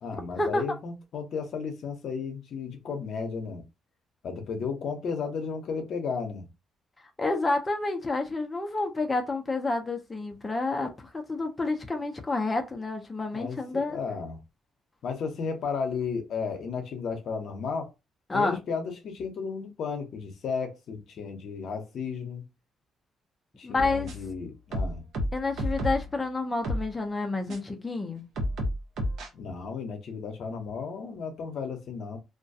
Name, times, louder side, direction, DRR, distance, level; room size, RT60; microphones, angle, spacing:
voice 1, 0.0-3.6 4.2-6.5 13.3-14.4 15.0-17.9 18.3-22.4 23.6-25.0 29.3-32.2, left 5 dB, 70° left, 0.7 m, -34 dB
voice 2, 7.2-14.0 18.3-18.6 23.6-24.1 25.3-28.2, left 3 dB, 20° left, 0.5 m, -29 dB
sound 1, 23.8-24.3 24.7-26.1 26.6-26.9 27.5-27.6 28.4-29.3, equal, 75° right, 0.7 m, -31 dB
2.3 x 2.2 x 2.6 m
cardioid pair, 90°, 0 cm